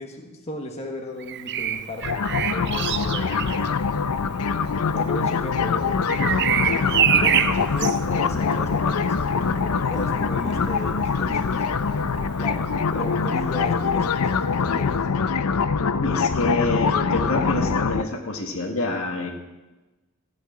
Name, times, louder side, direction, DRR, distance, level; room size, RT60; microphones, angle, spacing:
voice 1, 0.0-3.7 4.9-6.7 7.1-11.8 12.4-15.0, left 1 dB, 30° left, 2 dB, 1.3 m, -35 dB
Bird vocalization bird call bird song, 1.2-13.0 14.7-14.9, right 9 dB, 50° right, 0.6 m, -28 dB
sound 1, 2.0-18.0, left 5 dB, 85° left, 0.6 m, -24 dB
voice 2, 15.9-19.3, left 2 dB, 65° left, 4 dB, 1.5 m, -26 dB
14.0 x 6.5 x 8.6 m, 1.1 s
head